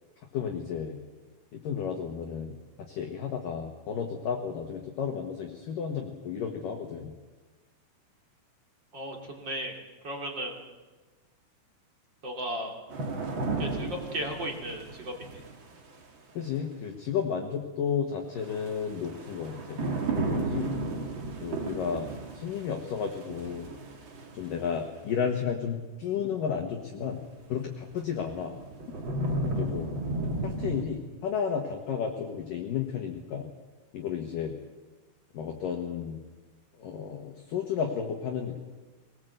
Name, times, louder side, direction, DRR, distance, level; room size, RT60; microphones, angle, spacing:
voice 1, 0.3-1.0 1.5-2.6 2.9-7.1 16.3-19.8 20.1-20.7 21.4-22.1 22.3-23.7 24.3-27.2 27.5-28.5 29.6-29.9 30.4-33.5 33.9-34.6 35.3-36.2 36.8-38.6, left 7 dB, 60° left, 2 dB, 2.4 m, -32 dB
voice 2, 8.9-9.7 10.0-10.6 12.2-12.8 13.6-15.4, right 1 dB, 30° right, 1 dB, 2.6 m, -35 dB
sound 1, 12.9-16.0 18.4-24.7 27.3-27.4 28.0-30.8, right 2 dB, 75° right, 1.1 m, -34 dB
23.0 x 19.0 x 8.0 m, 1.3 s
omnidirectional pair, 5.7 m